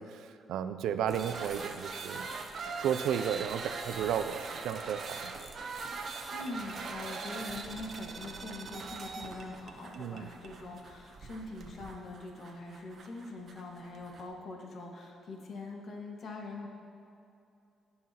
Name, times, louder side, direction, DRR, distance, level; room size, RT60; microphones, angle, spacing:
voice 1, 0.0-2.3 2.7-5.3 10.0-10.3, right 8 dB, 80° right, 11 dB, 0.3 m, -33 dB
sound 1, 1.1-14.3, right 4 dB, 55° right, 0.8 m, -42 dB
voice 2, 6.3-16.7, left 2 dB, 55° left, 0 dB, 1.5 m, -43 dB
16.0 x 5.6 x 2.9 m, 2.7 s
cardioid pair, 90°, 0 cm